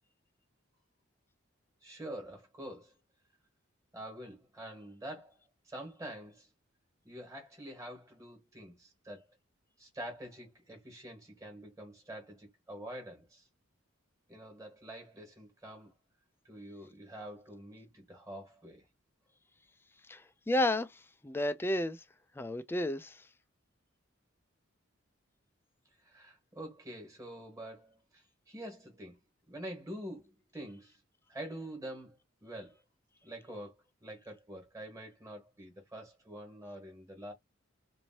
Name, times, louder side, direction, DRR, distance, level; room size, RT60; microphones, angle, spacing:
voice 1, 1.8-2.9 3.9-5.4 5.6-6.5 7.0-9.2 9.8-13.5 14.3-15.9 16.4-18.8 26.0-29.2 29.5-31.0 31.3-32.8 33.2-33.7 34.0-37.3, right 1 dB, 15° right, 1.5 m, -46 dB
voice 2, 20.1-22.0 22.4-23.2, left 1 dB, 10° left, 0.3 m, -32 dB
3.1 x 2.6 x 2.8 m
head